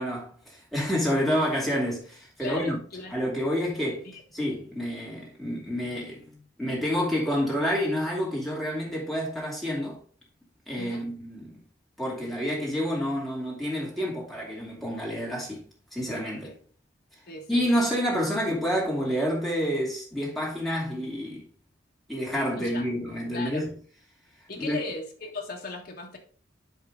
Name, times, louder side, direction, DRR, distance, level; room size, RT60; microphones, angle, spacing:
voice 1, 0.0-2.8 3.1-4.1 4.3-6.3 6.6-10.0 10.7-11.6 12.0-15.7 15.9-16.5 17.5-21.5 22.1-23.7 24.5-24.8, equal, ahead, 2.4 m, -28 dB
voice 2, 2.4-3.1 4.0-4.2 10.8-11.1 16.4-16.5 17.3-17.6 22.6-22.8 23.3-23.6 24.5-26.2, left 3 dB, 50° left, 1.5 m, -37 dB
11.0 x 3.7 x 3.7 m
head